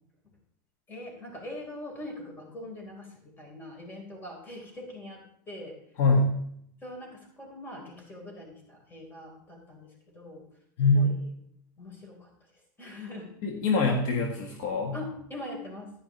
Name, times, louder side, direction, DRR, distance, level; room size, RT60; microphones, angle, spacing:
voice 1, 0.9-5.8 6.8-10.5 10.9-11.3 11.8-13.3 14.9-15.9, left 1 dB, 20° left, 0 dB, 4.2 m, -42 dB
voice 2, 6.0-6.4 10.8-11.1 13.4-14.9, left 2 dB, 60° left, 1 dB, 1.6 m, -24 dB
12.0 x 10.0 x 3.2 m, 0.70 s
supercardioid pair, 115°, 10 cm